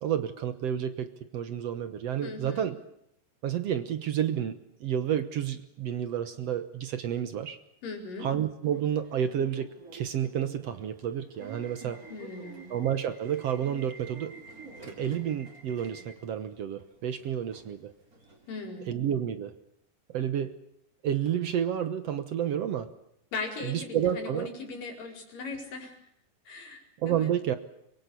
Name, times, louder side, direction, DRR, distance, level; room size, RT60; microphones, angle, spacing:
voice 1, 0.0-2.8 3.4-7.6 8.2-12.0 12.7-14.3 14.9-17.9 18.9-19.5 20.1-20.6 21.0-22.9 23.6-24.5 27.0-27.5, right 9 dB, 60° right, 11 dB, 1.9 m, -30 dB
voice 2, 2.2-2.7 7.8-8.3 12.1-12.7 18.5-18.9 23.3-26.0 26.5-27.3, left 3 dB, 90° left, 4 dB, 6.2 m, -39 dB
Subway metro underground / Alarm, 8.7-18.5, right 3 dB, 25° right, 3.5 m, -49 dB
24.0 x 22.5 x 8.4 m, 0.75 s
omnidirectional pair, 3.8 m